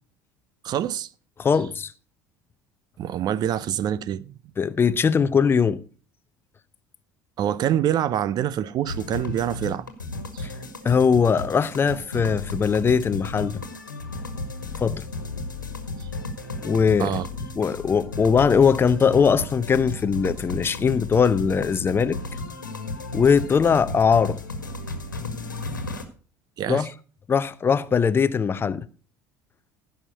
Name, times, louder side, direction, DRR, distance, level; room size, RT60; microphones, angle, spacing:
voice 1, 0.6-1.1 3.0-4.4 7.4-9.8 10.3-10.5 16.0-16.1 17.0-17.3 26.6-26.9, right 10 dB, 40° right, 0.6 m, -26 dB
voice 2, 1.4-1.9 4.6-5.8 10.4-10.5 10.8-13.6 14.8-15.0 16.6-17.1 17.6-22.2 23.1-24.4 26.7-26.9 27.3-28.9, left 6 dB, 20° left, 0.7 m, -20 dB
sound 1, 8.9-26.0, left 3 dB, 85° left, 1.6 m, -34 dB
15.5 x 5.8 x 5.4 m
figure-of-eight pair, 65°, 10 cm